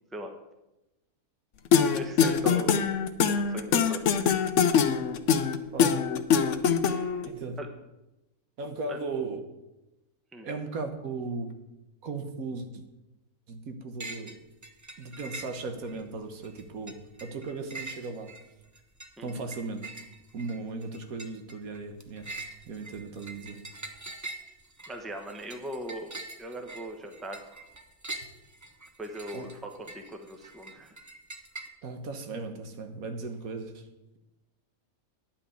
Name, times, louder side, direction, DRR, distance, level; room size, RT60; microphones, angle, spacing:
sound 1, 1.7-7.3, left 7 dB, 60° left, 1.0 m, -23 dB
voice 1, 1.9-2.9 3.5-4.0 7.6-7.7 8.9-9.0 10.3-10.5 19.2-19.5 24.9-26.1 26.4-27.4 29.0-30.9, right 1 dB, ahead, 5 dB, 0.8 m, -39 dB
voice 2, 5.7-6.1 7.2-7.6 8.6-9.4 10.4-11.5 12.0-12.8 13.5-14.4 15.0-18.3 19.2-19.8 20.3-22.3 22.7-23.6 29.3-29.5 31.8-33.8, right 3 dB, 75° right, 7 dB, 1.5 m, -37 dB
sound 2, 14.0-14.4 14.6-16.0 16.4-31.7, right 2 dB, 20° right, 0.5 m, -44 dB
10.0 x 5.9 x 8.3 m, 0.96 s
omnidirectional pair, 1.5 m